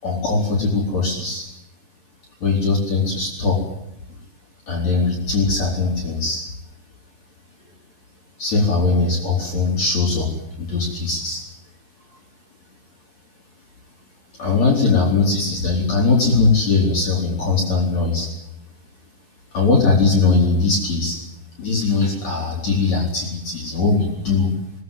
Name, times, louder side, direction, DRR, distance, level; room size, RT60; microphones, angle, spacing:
voice 1, 0.0-1.4 2.4-3.6 4.7-6.4 8.4-10.3 10.6-11.4 14.4-18.3 19.5-21.2 21.6-24.5, left 3 dB, 40° left, -2 dB, 5.2 m, -20 dB
21.0 x 19.5 x 9.2 m, 0.86 s
omnidirectional pair, 4.8 m